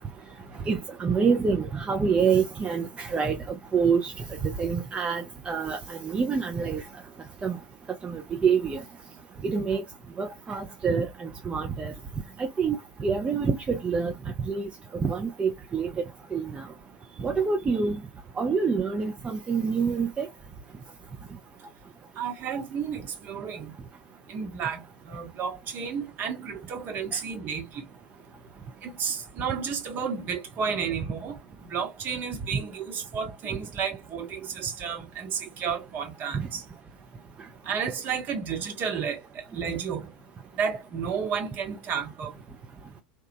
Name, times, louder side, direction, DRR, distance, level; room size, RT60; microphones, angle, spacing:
voice 1, 0.7-4.1 4.6-6.8 7.4-7.6 8.0-8.8 9.4-9.8 10.2-11.9 12.4-14.1 14.5-15.9 16.3-16.6 17.2-18.0 18.4-20.3 36.3-36.5, right 5 dB, 20° right, 0.5 m, -26 dB
voice 2, 22.2-23.7 24.3-24.8 25.1-27.8 28.8-31.4 31.6-36.6 37.7-40.1 40.6-42.3, right 6 dB, 40° right, 1.0 m, -32 dB
2.9 x 2.3 x 2.4 m
figure-of-eight pair, 80°, 5 cm